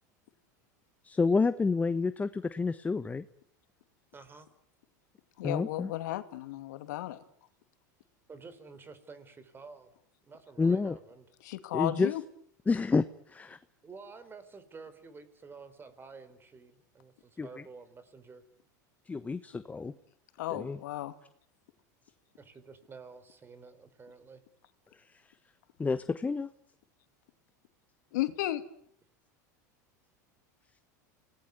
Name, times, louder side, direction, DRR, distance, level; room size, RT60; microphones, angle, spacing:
voice 1, 1.0-3.2 5.4-5.9 10.6-11.0 11.7-12.1 12.7-13.6 17.4-17.5 19.1-19.9 20.5-20.8 25.8-26.5, left 4 dB, 15° left, 12 dB, 1.1 m, -29 dB
voice 2, 4.1-4.5 8.3-9.9 10.3-11.2 13.8-18.4 22.4-24.4, right 4 dB, 20° right, 13 dB, 4.6 m, -50 dB
voice 3, 5.4-7.2 11.4-12.2 20.4-21.1 28.1-28.6, left 15 dB, 75° left, 10 dB, 2.4 m, -34 dB
28.0 x 19.5 x 9.7 m, 0.68 s
supercardioid pair, 105°, 10 cm